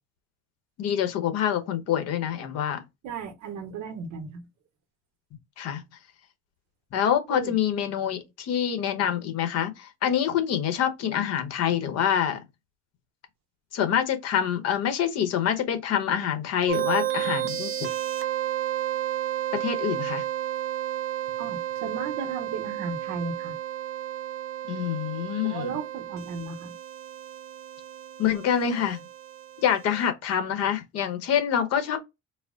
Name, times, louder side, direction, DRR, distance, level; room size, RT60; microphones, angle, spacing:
voice 1, 0.8-2.8 5.6-5.8 6.9-12.4 13.7-17.9 19.5-20.2 24.6-25.8 28.2-29.0 29.6-32.0, left 9 dB, 55° left, 1.0 m, -26 dB
voice 2, 3.0-4.4 7.3-7.5 21.4-23.5 25.4-26.7, right 5 dB, 70° right, 1.1 m, -35 dB
sound 1, 16.7-30.1, right 12 dB, 45° right, 0.6 m, -32 dB
4.2 x 2.1 x 3.7 m
cardioid pair, 175°, 30 cm